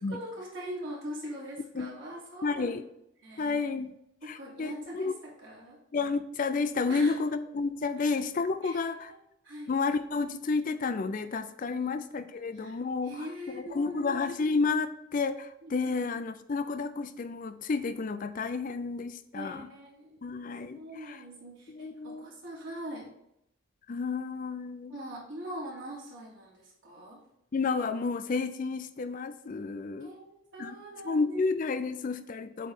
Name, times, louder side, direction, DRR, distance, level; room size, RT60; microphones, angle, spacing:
voice 1, 0.1-2.8 3.2-3.7 4.2-5.8 6.9-7.1 8.0-8.1 8.6-8.9 9.4-9.7 11.7-12.0 12.5-12.8 13.0-14.1 15.6-16.0 19.3-20.2 20.7-23.1 24.9-27.2 30.0-31.4, equal, 65° right, -6 dB, 3.0 m, -42 dB
voice 2, 2.4-2.8 3.4-4.0 4.3-5.2 5.9-9.1 9.7-19.7 20.2-21.2 21.7-22.3 23.9-24.9 27.5-30.1 30.6-30.7 31.0-32.7, left 4 dB, 40° left, 11 dB, 0.4 m, -31 dB
8.1 x 3.2 x 5.5 m, 0.79 s
head